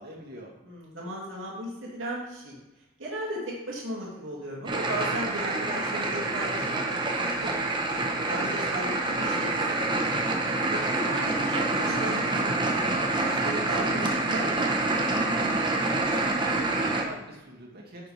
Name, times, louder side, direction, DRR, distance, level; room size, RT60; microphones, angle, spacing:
voice 1, 0.0-0.5 15.9-18.1, right 1 dB, 50° right, -2 dB, 2.3 m, -44 dB
voice 2, 0.6-2.6 3.0-10.1 10.7-12.8 13.2-14.7, right 1 dB, 70° right, -5 dB, 2.4 m, -36 dB
sound 1, 4.6-17.0, right 2 dB, 25° right, 1.0 m, -27 dB
10.5 x 6.8 x 3.4 m, 1.0 s
head